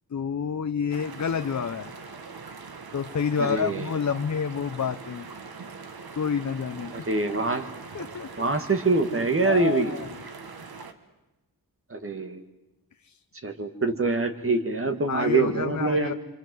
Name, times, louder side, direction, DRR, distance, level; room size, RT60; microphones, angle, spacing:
voice 1, 0.1-1.9 2.9-5.3 6.1-7.1 7.9-8.4 9.4-10.1 13.0-13.2 15.1-16.1, left 7 dB, 50° left, 8 dB, 0.9 m, -29 dB
sound 1, 0.9-10.9, right 4 dB, 75° right, 2.0 m, -42 dB
voice 2, 3.4-3.9 6.9-7.7 8.4-9.9 11.9-12.4 13.4-16.1, right 3 dB, 35° right, 6 dB, 2.3 m, -25 dB
27.0 x 26.0 x 8.0 m, 1.0 s
wide cardioid pair, 135°, 37 cm